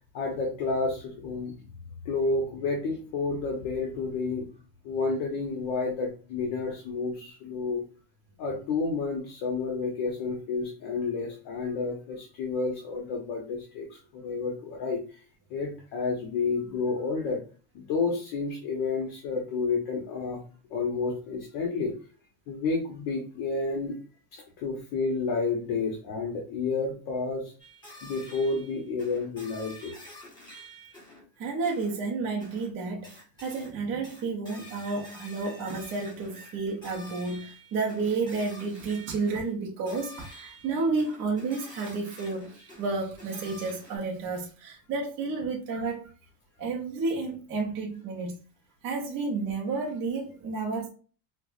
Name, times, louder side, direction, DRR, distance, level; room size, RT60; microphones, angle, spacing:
voice 1, 0.1-1.5 2.0-4.5 4.8-7.8 8.4-15.2 15.5-17.4 17.7-20.4 20.7-21.9 22.5-23.9 24.3-27.5 28.0-29.9, left 4 dB, 50° left, 0.9 m, -30 dB
sound 1, 27.6-31.3 31.7-32.0 32.4-32.7 33.0-33.7 34.0-39.5 39.9-44.0, equal, 10° left, 1.3 m, -48 dB
voice 2, 31.4-46.1 46.6-48.4 48.8-50.9, right 4 dB, 30° right, 0.5 m, -31 dB
4.5 x 2.1 x 2.4 m
cardioid pair, 165°, 44 cm